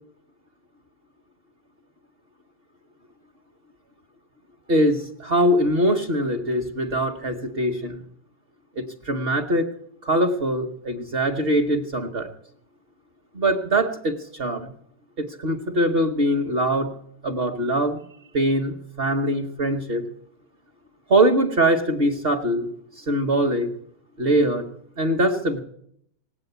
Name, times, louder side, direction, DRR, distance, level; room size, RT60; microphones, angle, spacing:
voice 1, 4.7-8.0 8.8-9.7 10.0-12.3 13.3-14.7 15.2-16.9 17.2-18.0 18.3-20.0 21.1-22.7 23.0-23.7 24.2-24.7 25.0-25.6, right 1 dB, 40° right, 5 dB, 1.0 m, -22 dB
19.0 x 8.2 x 8.0 m, 0.70 s
omnidirectional pair, 1.9 m